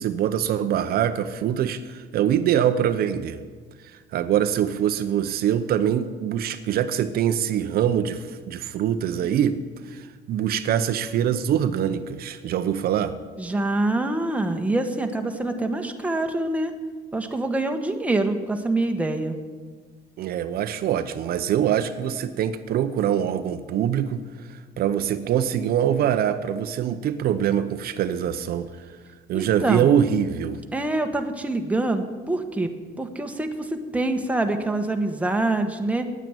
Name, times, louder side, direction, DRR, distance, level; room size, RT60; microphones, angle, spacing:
voice 1, 0.0-3.4 4.1-9.6 9.9-13.2 20.2-28.7 29.3-30.6, right 9 dB, 65° right, 10 dB, 0.7 m, -24 dB
voice 2, 13.4-16.7 17.1-19.4 29.3-29.9 30.7-32.7 33.0-36.0, right 2 dB, 10° right, 5 dB, 1.1 m, -25 dB
9.4 x 9.1 x 8.9 m, 1.5 s
cardioid pair, 110°, 17 cm